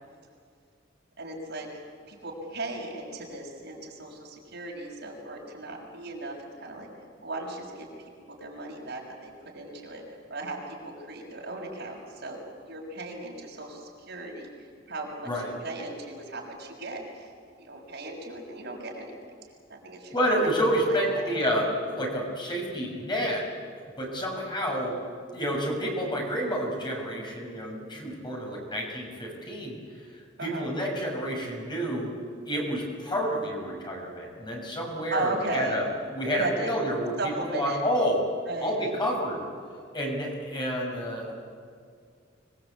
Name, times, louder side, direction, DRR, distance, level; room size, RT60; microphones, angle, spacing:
voice 1, 1.2-1.7 2.1-6.9 7.2-10.0 10.3-12.4 12.7-17.3 17.6-19.1 19.7-20.2 20.4-21.4 30.4-30.7 34.7-34.8 35.1-35.8 36.3-36.7 37.2-37.8 38.5-38.8, right 2 dB, 60° right, -1 dB, 6.4 m, -36 dB
voice 2, 20.1-23.4 24.0-25.0 25.3-32.1 32.5-37.1 37.5-38.2 38.6-39.4 39.9-41.3, equal, 25° left, -1 dB, 6.4 m, -29 dB
26.0 x 21.5 x 8.5 m, 2.2 s
head